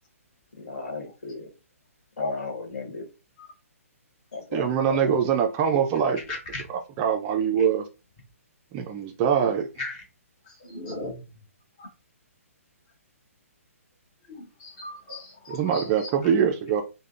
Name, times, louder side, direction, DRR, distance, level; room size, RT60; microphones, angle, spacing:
voice 1, 0.6-1.5 2.2-3.1 4.3-5.1, left 4 dB, 70° left, 1.2 m, -35 dB
voice 2, 4.5-6.2 6.7-7.9 8.7-9.7 15.5-16.8, right 7 dB, 25° right, 0.3 m, -23 dB
voice 3, 6.3-6.6 9.8-10.0 10.4-11.2 11.8-11.9 14.3-16.3, left 2 dB, 35° left, 1.4 m, -37 dB
3.4 x 2.0 x 2.4 m
hypercardioid pair, 140°, 8 cm